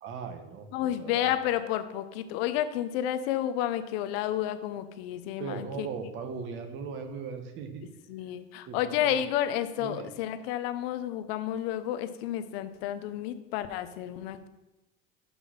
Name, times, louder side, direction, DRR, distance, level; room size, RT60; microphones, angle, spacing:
voice 1, 0.0-1.3 5.4-7.8 8.7-9.0 9.8-10.1, right 5 dB, 40° right, 6 dB, 1.0 m, -38 dB
voice 2, 0.7-5.9 7.8-14.5, left 11 dB, 85° left, 11 dB, 0.8 m, -31 dB
6.1 x 5.5 x 5.7 m, 1.0 s
cardioid pair, 155°, 29 cm